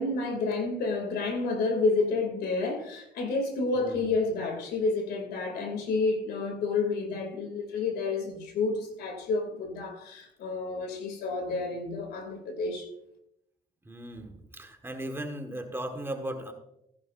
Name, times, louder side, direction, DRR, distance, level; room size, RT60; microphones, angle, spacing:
voice 1, 0.0-12.9, left 3 dB, 75° left, 2.7 m, -30 dB
voice 2, 3.8-4.1 13.8-16.5, right 1 dB, 15° right, 1.5 m, -37 dB
15.0 x 10.5 x 2.6 m
cardioid pair, 110°, 17 cm